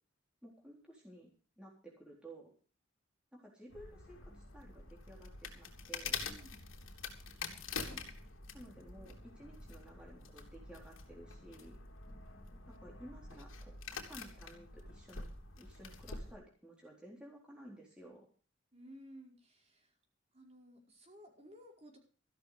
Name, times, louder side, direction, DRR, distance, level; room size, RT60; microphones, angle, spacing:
voice 1, 0.4-1.3 1.6-2.5 3.3-6.2 7.8-8.0 8.5-11.8 12.7-13.7 14.1-15.2 15.6-18.3, right 1 dB, 5° right, -3 dB, 3.8 m, -54 dB
sound 1, 3.7-16.3, left 5 dB, 85° left, 3.3 m, -46 dB
voice 2, 6.2-6.7 18.7-20.0 20.3-22.0, equal, 30° right, 1 dB, 4.8 m, -56 dB
15.0 x 12.5 x 5.0 m, 0.39 s
head